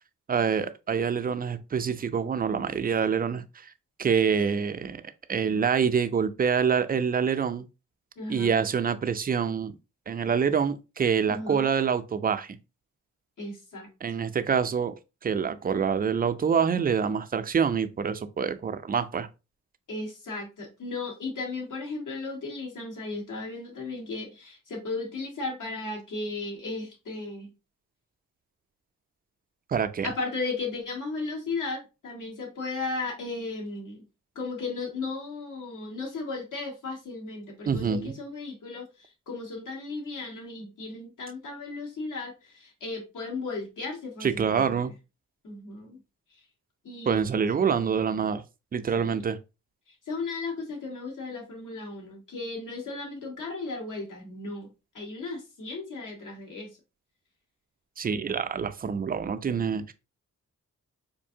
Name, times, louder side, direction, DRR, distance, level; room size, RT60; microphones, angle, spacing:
voice 1, 0.3-3.7 4.0-5.0 5.3-7.7 8.3-9.8 10.1-12.6 14.0-14.9 15.2-19.3 29.7-30.1 37.7-38.1 44.2-44.9 47.1-48.4 48.7-49.4 58.0-59.9, right 6 dB, 30° right, 0.4 m, -26 dB
voice 2, 8.2-8.5 11.3-11.7 13.4-13.9 19.9-27.5 30.0-34.0 34.3-44.8 45.4-46.0 46.8-47.7 48.9-49.2 50.1-54.7 54.9-56.8, left 3 dB, 75° left, 1.5 m, -35 dB
4.3 x 2.6 x 2.6 m
cardioid pair, 90°, 32 cm